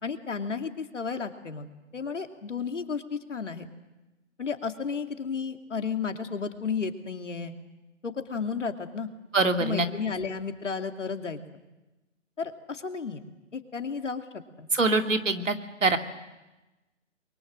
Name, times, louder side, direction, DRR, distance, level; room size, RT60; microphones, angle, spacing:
voice 1, 0.0-3.7 4.4-7.5 8.0-9.1 9.6-11.4 12.4-13.2 13.5-14.7, left 5 dB, 70° left, 6 dB, 2.6 m, -33 dB
voice 2, 9.3-9.9 14.7-15.5 15.8-16.0, right 3 dB, 80° right, 6 dB, 2.4 m, -23 dB
29.5 x 23.0 x 7.7 m, 1.1 s
figure-of-eight pair, 140°, 38 cm